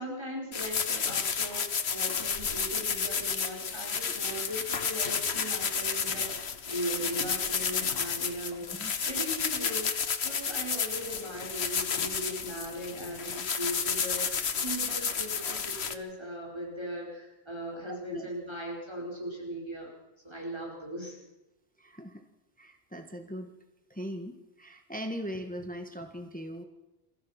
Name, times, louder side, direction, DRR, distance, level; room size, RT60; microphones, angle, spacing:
voice 1, 0.0-19.9 20.2-21.2, equal, 25° right, -3 dB, 5.1 m, -39 dB
sound 1, 0.5-15.9, left 6 dB, 75° left, 1.4 m, -31 dB
voice 2, 17.8-18.3 21.8-22.2 22.6-23.5 23.9-26.6, equal, 10° left, 6 dB, 1.5 m, -40 dB
29.5 x 15.5 x 5.9 m, 1.0 s
omnidirectional pair, 1.1 m